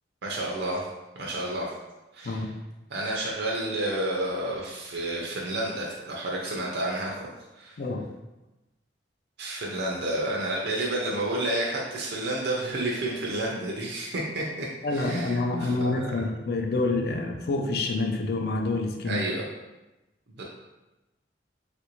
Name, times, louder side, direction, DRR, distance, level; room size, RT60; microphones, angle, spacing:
voice 1, 0.2-0.9 1.2-1.7 2.1-2.4 2.9-7.3 7.5-7.8 9.4-15.9 19.0-19.4 20.4-20.5, right 1 dB, 65° right, -3 dB, 0.5 m, -30 dB
voice 2, 14.8-19.3, left 2 dB, 60° left, 4 dB, 0.4 m, -27 dB
3.3 x 2.5 x 2.9 m, 1.0 s
head